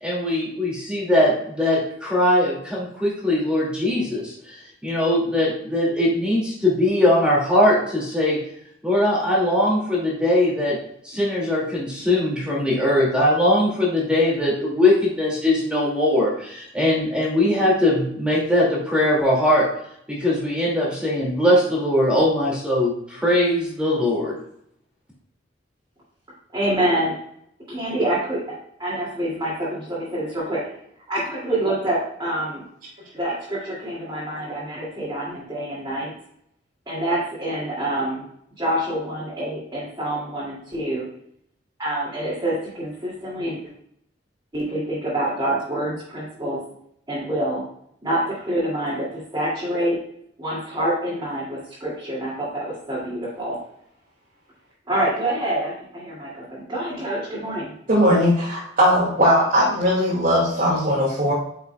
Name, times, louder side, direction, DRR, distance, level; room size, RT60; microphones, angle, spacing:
voice 1, 0.0-8.4 8.8-10.8 11.0-19.7 20.1-24.3, left 1 dB, 5° right, -5 dB, 2.3 m, -20 dB
voice 2, 26.5-27.2 27.7-30.8 31.1-32.6 33.1-36.1 36.9-38.3 38.6-41.1 41.8-43.6 44.5-46.6 47.1-47.7 48.0-50.0 50.4-53.6 54.9-57.7, right 1 dB, 20° right, -9 dB, 2.5 m, -26 dB
voice 3, 57.9-61.3, equal, 50° right, -8 dB, 2.2 m, -19 dB
9.5 x 5.7 x 2.3 m, 0.71 s
head